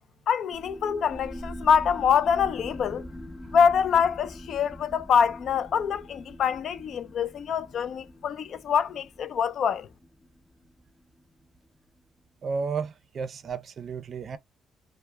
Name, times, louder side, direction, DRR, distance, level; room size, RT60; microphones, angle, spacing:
voice 1, 0.3-3.0 3.5-9.9, left 7 dB, 65° left, 0.3 m, -25 dB
sound 1, 0.5-11.6, left 1 dB, 20° left, 0.6 m, -44 dB
voice 2, 12.4-14.4, right 5 dB, 50° right, 0.4 m, -32 dB
2.1 x 2.0 x 3.2 m
cardioid pair, 90°, 0 cm